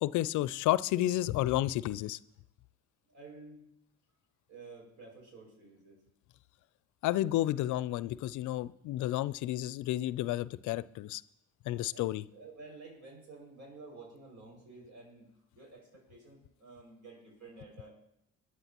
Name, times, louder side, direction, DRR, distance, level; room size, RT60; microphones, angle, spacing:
voice 1, 0.0-2.2 7.0-11.2 11.7-12.2, left 15 dB, 70° left, 19 dB, 0.5 m, -31 dB
voice 2, 3.1-3.6 4.5-6.0 11.9-12.0 12.3-15.3 15.5-17.9, right 3 dB, 65° right, -1 dB, 6.0 m, -51 dB
22.0 x 9.6 x 3.0 m, 0.81 s
hypercardioid pair, 50°, 31 cm